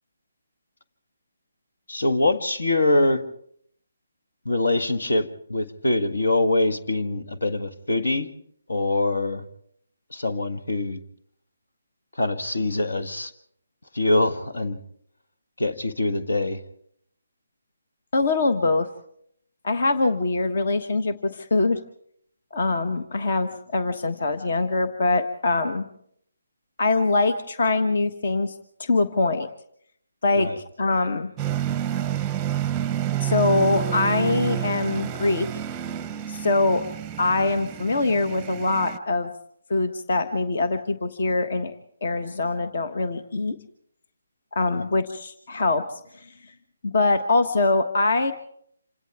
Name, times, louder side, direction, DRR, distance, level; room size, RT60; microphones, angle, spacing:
voice 1, 1.9-3.2 4.5-8.3 8.7-9.4 10.1-11.0 12.2-13.3 13.9-14.8 15.6-16.6 30.4-30.6, left 2 dB, 70° left, 7 dB, 1.8 m, -23 dB
voice 2, 18.1-18.9 19.6-21.8 22.5-25.8 26.8-29.5 30.2-31.3 33.2-35.5 36.3-36.8 37.2-39.3 39.7-41.7 42.0-43.5 44.5-46.3 46.8-48.3, left 3 dB, 55° left, 9 dB, 1.3 m, -23 dB
sound 1, 31.4-39.0, right 10 dB, 15° right, 0.7 m, -29 dB
27.5 x 26.5 x 3.6 m, 0.66 s
figure-of-eight pair, 145°, 0 cm